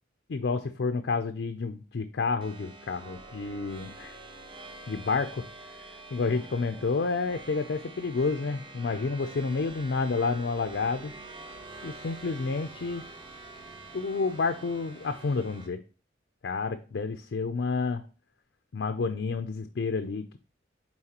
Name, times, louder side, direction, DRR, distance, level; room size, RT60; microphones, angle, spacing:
voice 1, 0.3-4.2 4.9-5.5 5.7-11.1 11.8-13.1 13.9-15.8 16.4-18.0 18.7-20.4, left 4 dB, 65° left, 8 dB, 0.4 m, -30 dB
sound 1, 2.4-15.7, right 2 dB, 25° right, 0.7 m, -46 dB
8.8 x 3.9 x 2.9 m, 0.36 s
head